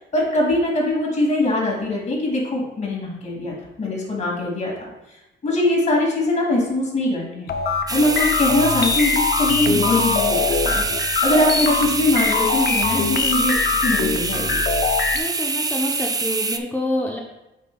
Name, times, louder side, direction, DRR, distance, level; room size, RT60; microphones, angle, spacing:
voice 1, 0.1-4.9 5.4-7.5 7.9-14.5, left 2 dB, 35° left, -3 dB, 2.4 m, -22 dB
sound 1, 7.5-15.2, left 5 dB, 55° left, 0.7 m, -23 dB
sound 2, 7.9-16.6, right 4 dB, 20° right, 0.4 m, -25 dB
voice 2, 15.1-17.2, left 1 dB, 10° left, -1 dB, 0.8 m, -27 dB
8.1 x 5.6 x 2.3 m, 0.94 s
cardioid pair, 90°, 20 cm